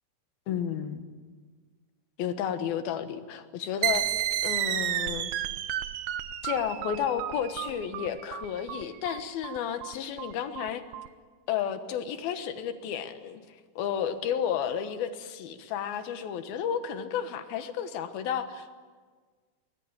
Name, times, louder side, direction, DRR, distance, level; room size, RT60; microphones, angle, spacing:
voice 1, 0.5-1.0 2.2-4.1 4.4-5.3 6.4-10.8 11.5-13.4 13.8-18.7, left 8 dB, 85° left, 9 dB, 3.2 m, -32 dB
sound 1, 3.8-11.1, right 12 dB, 70° right, 1.9 m, -31 dB
24.0 x 20.5 x 9.0 m, 1.5 s
omnidirectional pair, 4.2 m